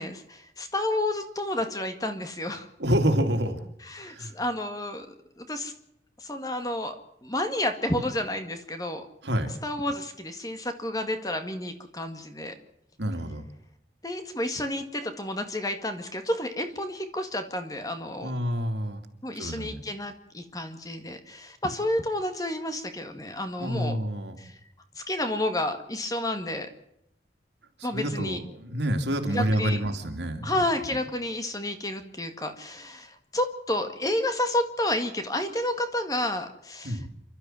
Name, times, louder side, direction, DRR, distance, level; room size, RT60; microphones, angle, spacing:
voice 1, 0.0-2.7 3.8-5.1 5.4-5.7 6.2-7.0 7.2-9.1 9.6-12.5 14.0-18.3 19.2-24.0 24.4-24.6 25.0-26.7 27.8-28.4 29.3-29.8 30.4-37.0, left 1 dB, 20° left, 7 dB, 1.9 m, -30 dB
voice 2, 2.8-3.6 4.0-4.3 9.2-9.5 13.0-13.4 18.2-19.0 19.3-19.8 23.6-24.4 27.8-30.6 36.8-37.1, equal, 75° right, 5 dB, 2.8 m, -28 dB
29.0 x 12.5 x 7.6 m, 0.79 s
head